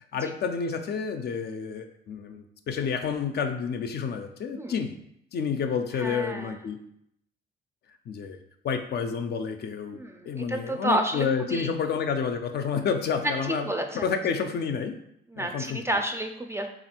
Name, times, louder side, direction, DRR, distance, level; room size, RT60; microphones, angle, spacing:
voice 1, 0.1-4.9 5.3-6.8 8.1-8.4 8.6-10.0 10.2-13.7 13.9-15.0 15.3-15.8, left 6 dB, 55° left, 6 dB, 0.4 m, -29 dB
voice 2, 5.9-6.6 9.9-11.7 13.2-14.1 15.3-16.7, right 1 dB, 15° right, 5 dB, 0.4 m, -30 dB
3.3 x 2.5 x 4.3 m, 0.74 s
cardioid pair, 90°, 20 cm